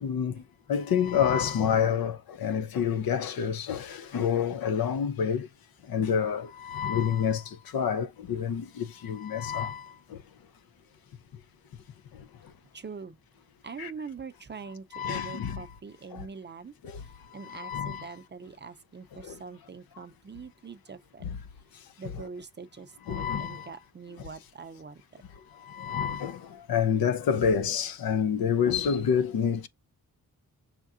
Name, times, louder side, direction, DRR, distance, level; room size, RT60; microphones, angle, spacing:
voice 1, 0.0-0.3 0.7-2.2 2.4-5.5 5.9-7.4 7.7-9.8 13.8-13.9 14.9-15.6 17.5-18.0 23.1-23.6 25.8-26.4 26.7-29.7, left 7 dB, 75° left, 0.6 m, -27 dB
voice 2, 12.7-13.2 13.6-21.3 22.0-25.2, right 5 dB, 30° right, 0.5 m, -43 dB
5.7 x 3.7 x 2.4 m
wide cardioid pair, 100°, 36 cm